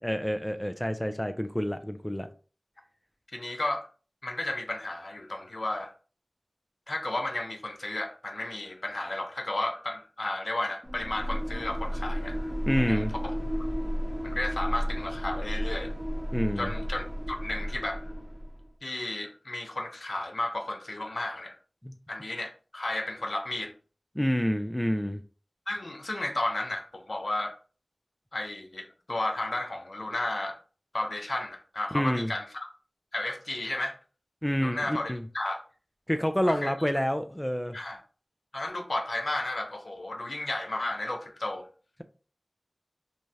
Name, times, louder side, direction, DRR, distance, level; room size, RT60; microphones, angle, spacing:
voice 1, 0.0-2.3 12.7-13.1 16.3-16.7 21.8-21.9 24.2-25.2 31.9-32.3 34.4-35.2 36.1-37.8, equal, 10° left, 0.3 m, -28 dB
voice 2, 3.3-3.9 4.2-5.9 6.9-12.5 12.9-13.3 14.2-15.9 16.6-18.1 18.8-21.6 22.1-23.7 25.7-27.6 28.3-30.6 30.9-32.5 33.1-34.0 34.6-35.6 36.5-36.7 37.7-38.0 38.5-41.7, left 2 dB, 75° left, 0.5 m, -33 dB
sound 1, 10.8-18.6, equal, 25° right, 0.7 m, -32 dB
3.1 x 2.3 x 2.7 m
wide cardioid pair, 55°, 0 cm